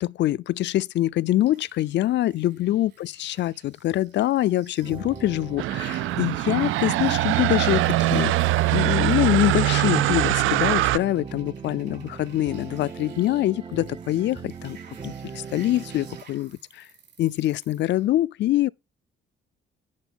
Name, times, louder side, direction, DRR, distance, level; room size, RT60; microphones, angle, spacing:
voice 1, 0.0-8.3 8.7-14.8 15.0-16.9 17.2-18.7, left 14 dB, 65° left, 0.4 m, -24 dB
sound 1, 1.4-18.1, right 7 dB, 60° right, 3.6 m, -55 dB
sound 2, 4.8-16.2, right 6 dB, 25° right, 0.6 m, -39 dB
sound 3, 5.6-11.0, right 16 dB, 85° right, 0.4 m, -22 dB
11.0 x 4.5 x 5.2 m
cardioid pair, 90°, 20 cm